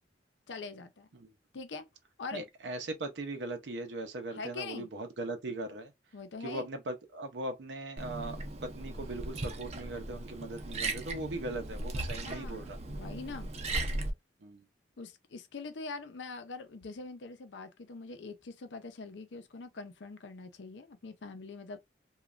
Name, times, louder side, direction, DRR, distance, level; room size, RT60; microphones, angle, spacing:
voice 1, 0.5-1.1 1.5-1.9 2.2-2.4 4.3-4.9 6.1-6.7 12.2-13.5 15.0-21.8, left 4 dB, 85° left, 0.5 m, -43 dB
voice 2, 2.3-5.9 6.4-12.8 14.4-14.7, right 2 dB, 85° right, 0.6 m, -39 dB
Liquid, 8.0-14.1, right 2 dB, 35° right, 0.5 m, -37 dB
3.1 x 2.3 x 2.4 m
head